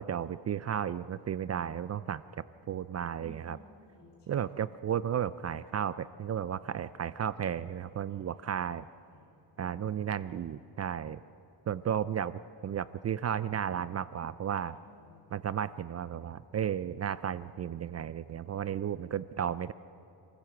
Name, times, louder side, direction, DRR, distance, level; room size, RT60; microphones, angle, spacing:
voice 1, 0.0-2.2 2.7-3.6 4.3-8.9 9.6-11.2 11.7-14.8 15.3-19.7, right 9 dB, 40° right, 16 dB, 0.4 m, -33 dB
voice 2, 3.2-4.5 9.1-9.2 14.6-15.3, left 1 dB, 70° left, -1 dB, 6.3 m, -55 dB
26.0 x 15.0 x 7.8 m, 2.9 s
cardioid pair, 135°, 42 cm